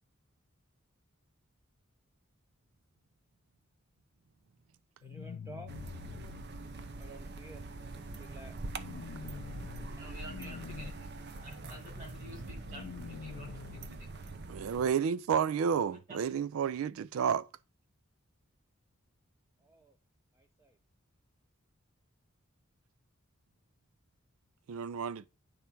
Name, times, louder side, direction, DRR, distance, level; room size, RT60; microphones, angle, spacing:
sound 1, 5.0-6.4 8.8-9.9 10.2-10.9 12.7-13.9, left 7 dB, 65° left, 0.3 m, -46 dB
voice 1, 5.0-5.7 7.0-7.6 8.2-8.6 10.0-10.6 11.4-12.1 12.8-12.9 19.6-20.0 20.3-20.8, right 2 dB, 15° right, 0.5 m, -53 dB
sound 2, 5.7-14.9, right 2 dB, 55° right, 0.7 m, -44 dB
voice 2, 10.0-11.1 11.4-14.1 15.9-16.2, equal, 40° right, 2.8 m, -51 dB
voice 3, 14.5-17.5 24.7-25.3, right 7 dB, 85° right, 0.4 m, -31 dB
10.0 x 3.5 x 4.4 m
head